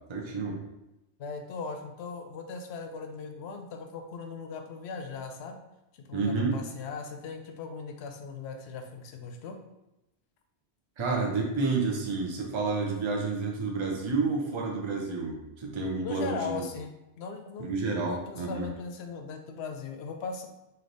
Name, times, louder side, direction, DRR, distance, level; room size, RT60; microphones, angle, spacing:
voice 1, 0.1-0.6 6.1-6.6 11.0-16.6 17.6-18.7, right 3 dB, 35° right, 0 dB, 0.6 m, -30 dB
voice 2, 1.2-5.6 6.0-9.6 16.0-20.5, left 5 dB, 70° left, 4 dB, 0.8 m, -39 dB
3.3 x 2.8 x 3.9 m, 0.92 s
omnidirectional pair, 1.2 m